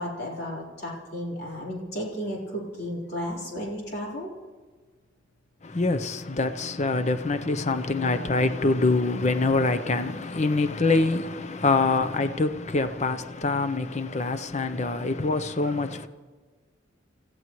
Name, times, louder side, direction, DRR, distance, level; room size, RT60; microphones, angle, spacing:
voice 1, 0.0-4.3 12.8-12.9 14.1-14.2 15.6-15.7, equal, 55° left, 4.1 m, -34 dB
voice 2, 5.6-16.1, left 3 dB, 35° left, 0.7 m, -25 dB
29.0 x 15.0 x 3.1 m
head